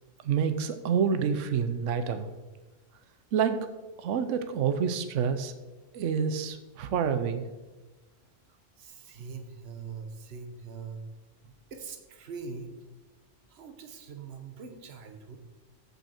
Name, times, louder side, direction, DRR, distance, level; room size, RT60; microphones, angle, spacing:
voice 1, 0.2-2.3 3.3-3.7 4.0-5.5 5.9-7.4, right 7 dB, 75° right, 10 dB, 1.0 m, -28 dB
voice 2, 8.8-11.1 11.7-12.8 13.5-15.4, right 5 dB, 55° right, 6 dB, 1.3 m, -42 dB
14.0 x 5.5 x 4.4 m, 1.2 s
omnidirectional pair, 1.3 m